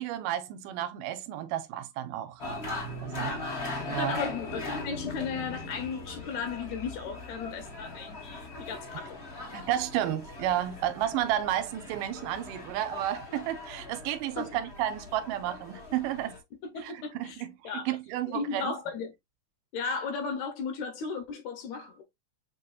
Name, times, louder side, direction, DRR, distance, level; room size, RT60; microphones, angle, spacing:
voice 1, 0.0-2.4 3.0-3.3 3.9-4.2 9.5-16.4 16.8-18.7, right 12 dB, 80° right, 2.2 m, -32 dB
sound 1, 2.4-16.4, left 2 dB, 85° left, 0.5 m, -40 dB
voice 2, 3.9-9.5 14.4-14.6 16.6-18.0 18.3-19.1 19.7-22.0, left 5 dB, 70° left, 1.9 m, -35 dB
7.3 x 2.8 x 2.3 m
omnidirectional pair, 3.8 m